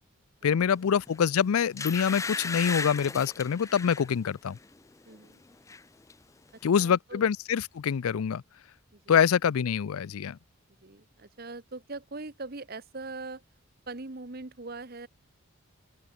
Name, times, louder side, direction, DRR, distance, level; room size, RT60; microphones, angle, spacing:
voice 1, 0.4-4.6 6.6-8.4 9.1-10.4, left 7 dB, 85° left, 0.4 m, -25 dB
sound 1, 1.1-1.2 1.8-4.1 4.6-4.8 5.1-5.8 6.1-6.2, left 4 dB, 15° left, 0.3 m, -35 dB
voice 2, 5.1-5.4 6.7-7.2 8.9-9.1 10.8-13.4 13.9-15.1, right 3 dB, 45° right, 1.1 m, -41 dB
open air
head